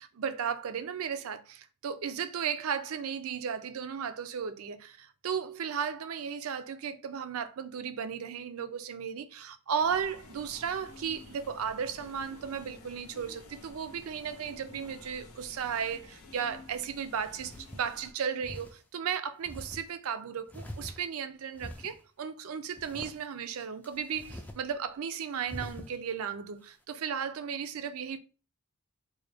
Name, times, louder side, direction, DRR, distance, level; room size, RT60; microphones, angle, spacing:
voice 1, 0.0-28.2, right 7 dB, 70° right, 0.4 m, -35 dB
sound 1, 9.8-18.1, left 3 dB, 90° left, 0.7 m, -51 dB
sound 2, 16.8-16.9 17.3-17.9 18.4-18.7 19.4-19.8 20.5-21.2 21.5-22.0 22.7-23.2 23.8-24.6 24.9-25.0 25.4-25.9, equal, 5° left, 0.3 m, -44 dB
3.8 x 2.3 x 3.3 m
head